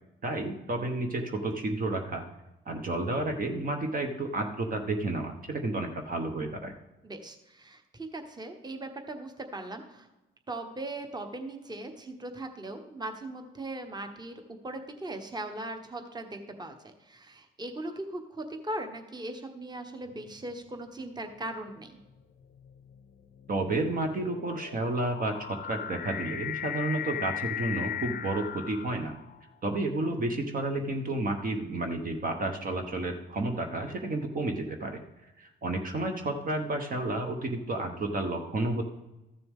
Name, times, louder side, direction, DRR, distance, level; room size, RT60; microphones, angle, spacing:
voice 1, 0.2-2.2 2.7-6.7 23.5-29.1 29.6-35.0 35.4-38.8, right 2 dB, 45° right, 4 dB, 1.1 m, -31 dB
voice 2, 7.0-10.1 10.5-22.0, right 1 dB, 20° right, 5 dB, 1.2 m, -39 dB
sound 1, 20.1-20.5 21.4-29.6, left 10 dB, 50° left, 0.6 m, -38 dB
13.5 x 6.8 x 3.6 m, 0.98 s
cardioid pair, 90°, 20 cm